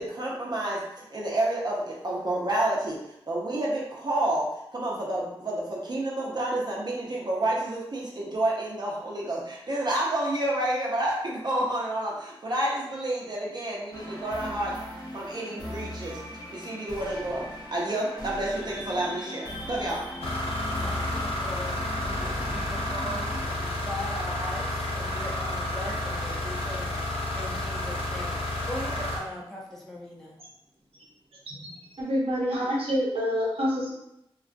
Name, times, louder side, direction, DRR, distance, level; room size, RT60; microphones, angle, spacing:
voice 1, 0.0-3.0 3.3-14.7 15.1-16.2 16.5-17.4 17.7-20.0, right 1 dB, 45° right, -5 dB, 0.6 m, -29 dB
sound 1, 13.9-23.4, equal, 40° left, 0.7 m, -39 dB
sound 2, 20.2-29.2, left 1 dB, 85° left, 0.5 m, -31 dB
voice 2, 20.8-30.4, left 1 dB, 5° left, -5 dB, 0.7 m, -39 dB
voice 3, 32.0-33.9, equal, 75° right, -4 dB, 0.8 m, -27 dB
2.3 x 2.2 x 2.5 m, 0.81 s
wide cardioid pair, 60°, 10 cm